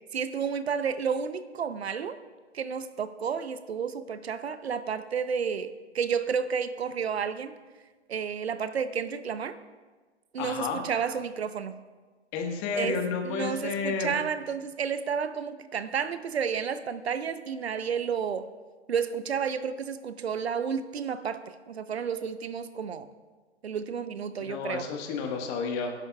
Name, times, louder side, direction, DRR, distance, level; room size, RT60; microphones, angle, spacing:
voice 1, 0.1-2.2 2.5-7.5 8.1-9.6 10.3-11.7 12.8-13.0 13.2-18.5 18.9-21.4 21.7-23.1 23.6-24.9, right 6 dB, 65° right, 12 dB, 0.7 m, -31 dB
voice 2, 10.4-10.8 12.3-14.1 24.4-25.9, left 5 dB, 25° left, 3 dB, 1.5 m, -31 dB
23.0 x 11.0 x 2.4 m, 1.4 s
figure-of-eight pair, 120°, 35 cm